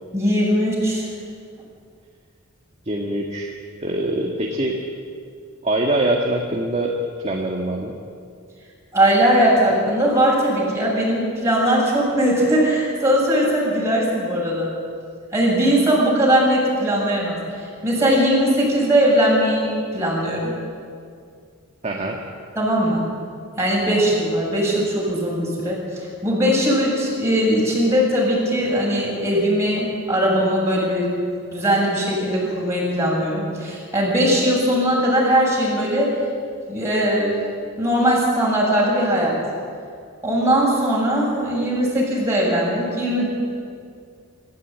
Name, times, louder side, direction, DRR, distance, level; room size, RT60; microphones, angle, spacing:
voice 1, 0.1-1.0 8.9-14.7 15.3-20.5 22.6-23.0 23.6-31.1 31.5-36.2 36.7-37.4 37.8-39.4 40.2-43.3, equal, 15° right, -5 dB, 7.7 m, -20 dB
voice 2, 2.9-3.5 3.8-4.8 5.6-6.9 7.2-7.9 21.8-22.2, right 1 dB, 30° right, 0 dB, 1.7 m, -23 dB
25.0 x 14.0 x 9.4 m, 2.3 s
head